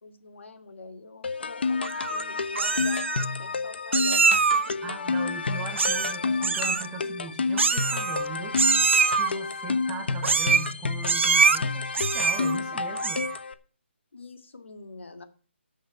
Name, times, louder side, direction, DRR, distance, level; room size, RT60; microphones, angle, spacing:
voice 1, 0.0-4.8 14.1-15.2, left 3 dB, 75° left, 2.6 m, -45 dB
sound 1, 1.2-13.5, left 4 dB, 60° left, 1.2 m, -30 dB
Meow, 1.8-2.2 2.6-3.3 3.9-4.7 5.8-6.2 6.4-6.9 7.6-8.3 8.6-9.3 10.2-10.7 11.0-11.6 11.9-12.5 13.0-13.4, right 5 dB, 75° right, 0.6 m, -23 dB
voice 2, 4.8-8.6 9.2-13.3, right 5 dB, 15° right, 1.0 m, -39 dB
13.0 x 6.5 x 5.9 m
hypercardioid pair, 170°, 7 cm